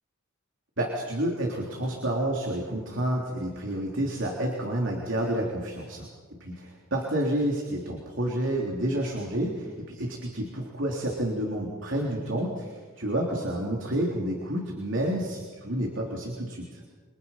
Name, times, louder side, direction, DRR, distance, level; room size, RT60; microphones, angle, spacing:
voice 1, 0.8-16.8, right 1 dB, 60° right, -1 dB, 3.6 m, -29 dB
29.0 x 24.5 x 5.9 m, 1.4 s
head